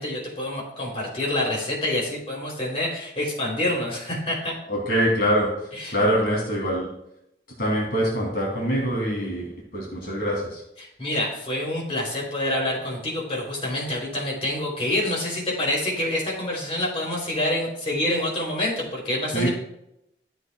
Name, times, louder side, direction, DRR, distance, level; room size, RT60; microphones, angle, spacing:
voice 1, 0.0-4.5 5.7-6.0 10.8-19.5, left 1 dB, 35° left, -3 dB, 3.2 m, -27 dB
voice 2, 4.7-5.5 5.9-6.9 7.6-9.5 9.7-10.6 19.3-19.5, equal, 55° left, -3 dB, 2.8 m, -24 dB
13.5 x 7.8 x 2.3 m, 0.81 s
head